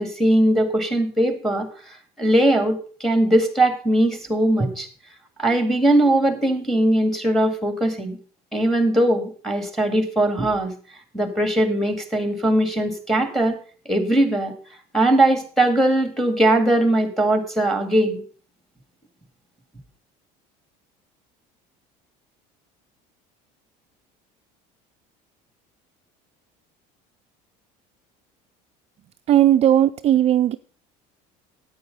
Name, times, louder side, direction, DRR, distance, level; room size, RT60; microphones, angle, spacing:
voice 1, 0.0-4.9 5.4-8.2 8.5-10.7 11.1-13.6 13.9-14.5 14.9-18.2, right 1 dB, ahead, 8 dB, 2.0 m, -20 dB
voice 2, 29.3-30.6, right 11 dB, 40° right, 8 dB, 0.4 m, -16 dB
9.5 x 8.7 x 5.3 m, 0.40 s
cardioid pair, 125°, 17 cm